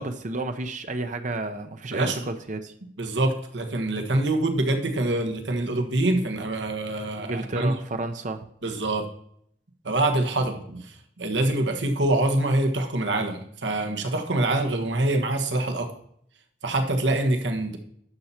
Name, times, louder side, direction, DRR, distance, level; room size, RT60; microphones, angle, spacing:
voice 1, 0.0-2.7 7.1-8.5, right 2 dB, 45° right, 7 dB, 0.7 m, -31 dB
voice 2, 3.0-7.7 8.6-9.0 9.8-15.9 16.6-17.8, right 2 dB, 80° right, 5 dB, 1.5 m, -25 dB
11.5 x 7.1 x 4.4 m, 0.68 s
head